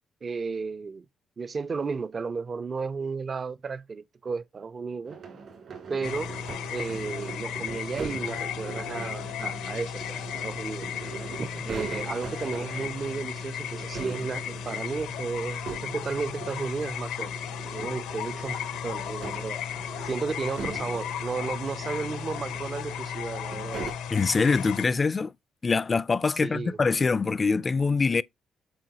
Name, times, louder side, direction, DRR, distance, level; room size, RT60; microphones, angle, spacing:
voice 1, 0.2-1.1 1.4-5.2 5.9-6.3 6.7-10.9 11.4-17.4 17.7-19.6 20.0-23.8 26.3-26.8, right 4 dB, 40° right, 0.4 m, -33 dB
sound 1, 5.0-23.9, right 5 dB, 60° right, 2.7 m, -42 dB
sound 2, 6.0-24.9, left 9 dB, 90° left, 0.6 m, -35 dB
voice 2, 24.1-25.3 25.6-28.2, left 4 dB, 30° left, 0.3 m, -24 dB
7.7 x 4.5 x 2.8 m
cardioid pair, 90°, 0 cm